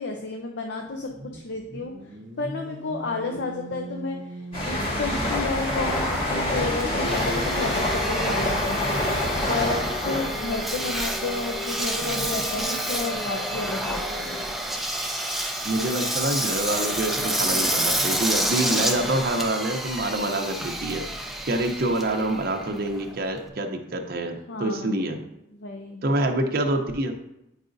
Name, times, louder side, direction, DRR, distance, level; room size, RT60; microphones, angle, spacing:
voice 1, 0.0-1.9 2.4-8.8 9.5-14.4 17.5-17.7 24.5-25.1 25.5-26.0, left 3 dB, 65° left, 2 dB, 0.6 m, -32 dB
sound 1, 0.8-14.5, right 1 dB, 85° right, 0.8 m, -38 dB
sound 2, 4.5-12.0 12.3-12.6, left 1 dB, 30° left, 1.7 m, -27 dB
Engine, 5.1-23.5, right 1 dB, ahead, 0.6 m, -29 dB
voice 2, 15.6-25.2 26.0-27.2, right 1 dB, 55° right, 4 dB, 0.7 m, -26 dB
9.0 x 4.8 x 2.6 m, 0.86 s
head